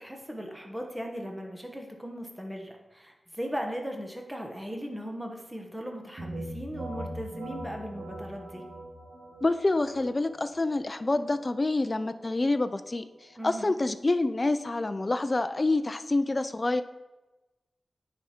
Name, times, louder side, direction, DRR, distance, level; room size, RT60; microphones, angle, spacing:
voice 1, 0.0-8.6 13.4-13.7, equal, 5° right, 2 dB, 1.2 m, -38 dB
sound 1, 6.2-15.8, right 1 dB, 55° right, 1.7 m, -43 dB
voice 2, 9.4-13.0 13.4-16.8, left 2 dB, 30° left, 11 dB, 0.4 m, -27 dB
9.5 x 4.9 x 4.3 m, 1.1 s
wide cardioid pair, 100°, 0 cm